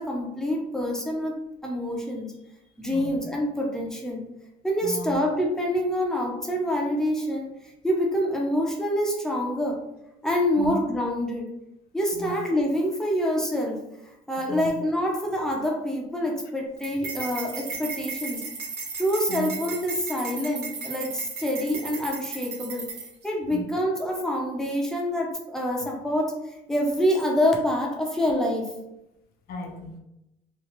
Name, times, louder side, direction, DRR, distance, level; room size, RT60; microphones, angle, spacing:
voice 1, 0.0-1.4 1.6-2.4 2.8-4.3 4.6-9.8 10.2-11.5 11.9-13.8 14.3-18.4 19.0-22.9 23.2-26.3 26.7-28.7, equal, 5° left, -1 dB, 0.7 m, -26 dB
voice 2, 4.8-5.2 10.6-10.7 12.1-12.4 14.5-14.7 19.3-19.5 23.5-23.6 29.5-30.0, left 2 dB, 65° left, 4 dB, 0.6 m, -35 dB
sound 1, 16.8-23.3, right 5 dB, 80° right, 1.0 m, -35 dB
3.0 x 2.3 x 3.2 m, 0.87 s
cardioid pair, 110°, 17 cm